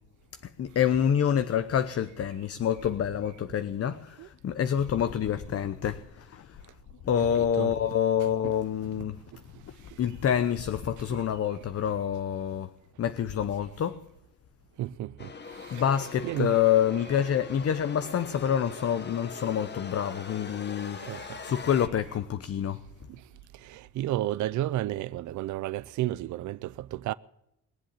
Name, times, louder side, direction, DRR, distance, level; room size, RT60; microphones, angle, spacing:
voice 1, 0.6-6.6 7.0-9.2 10.0-12.7 13.0-14.0 15.7-22.8, left 9 dB, 50° left, 0.8 m, -27 dB
voice 2, 7.3-7.7 8.4-8.5 14.8-15.3 16.2-16.5 21.1-21.3 23.7-27.1, right 14 dB, 75° right, 0.5 m, -32 dB
sound 1, 15.2-21.9, left 5 dB, 35° left, 1.3 m, -42 dB
21.0 x 7.7 x 8.4 m
cardioid pair, 90°, 30 cm